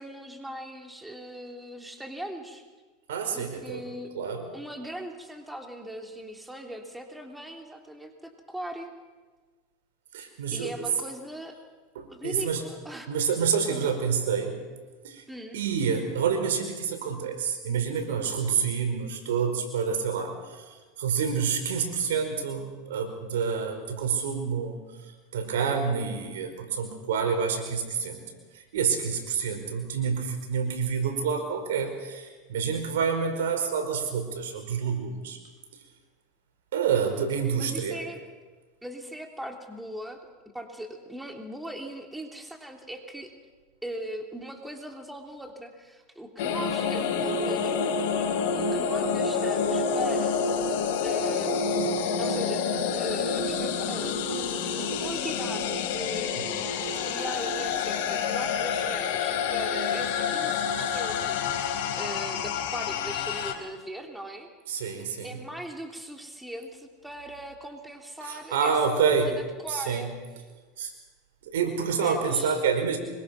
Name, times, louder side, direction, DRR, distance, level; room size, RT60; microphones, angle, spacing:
voice 1, 0.0-2.7 3.3-4.1 4.5-8.9 10.5-11.6 12.1-13.2 13.7-13.9 15.3-15.6 37.6-38.2 38.8-40.2 40.5-43.3 43.8-50.7 51.0-51.6 52.2-52.6 53.0-61.4 62.0-64.5 65.2-70.1 72.0-72.7, right 1 dB, 5° right, 3 dB, 3.4 m, -39 dB
voice 2, 3.1-3.8 4.1-4.5 10.1-10.7 11.9-12.6 13.1-14.6 15.0-15.2 15.5-20.3 21.0-24.8 25.3-28.2 28.5-35.4 36.7-38.1 64.7-65.4 68.3-69.4 69.7-70.1 70.8-70.9 71.5-73.0, right 6 dB, 85° right, 5 dB, 5.0 m, -28 dB
sound 1, 46.4-63.5, left 5 dB, 70° left, 3.7 m, -28 dB
25.0 x 23.5 x 6.0 m, 1.3 s
hypercardioid pair, 110°, 0 cm